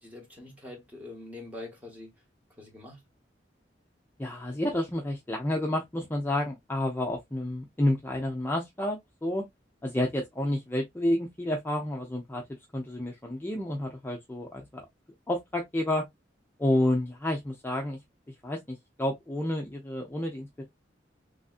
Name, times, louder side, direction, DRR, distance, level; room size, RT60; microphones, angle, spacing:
voice 1, 0.0-2.1 2.6-3.0, left 2 dB, 10° right, 1.2 m, -44 dB
voice 2, 4.2-9.5 9.8-12.4 12.7-14.9 15.3-16.0 16.6-18.0 18.3-20.6, left 1 dB, 10° left, 0.5 m, -30 dB
3.4 x 2.5 x 2.4 m
head